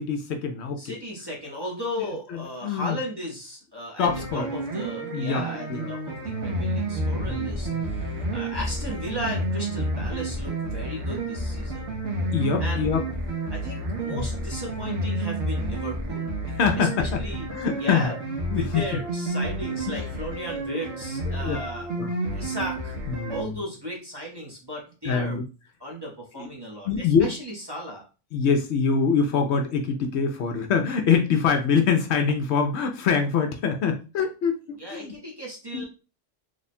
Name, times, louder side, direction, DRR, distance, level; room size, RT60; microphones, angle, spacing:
voice 1, 0.0-0.9 2.3-3.0 4.0-4.5 5.1-5.4 5.7-5.9 7.2-7.9 12.3-13.1 14.1-14.3 16.6-17.2 17.5-18.1 18.5-18.8 19.9-20.0 21.4-21.6 22.0-22.1 23.1-23.5 25.0-25.4 26.4-26.5 26.9-27.3 28.3-34.6 34.9-35.1 35.7-35.9, left 6 dB, 70° left, 5 dB, 0.8 m, -24 dB
voice 2, 0.8-11.9 12.6-12.9 13.5-16.3 16.7-17.5 17.8-18.2 18.5-21.9 22.3-23.0 23.3-25.4 25.8-28.0 34.8-35.9, equal, 25° right, -3 dB, 0.8 m, -35 dB
sound 1, 4.0-23.4, right 1 dB, 65° right, 1.1 m, -30 dB
3.1 x 2.3 x 4.2 m, 0.32 s
omnidirectional pair, 1.3 m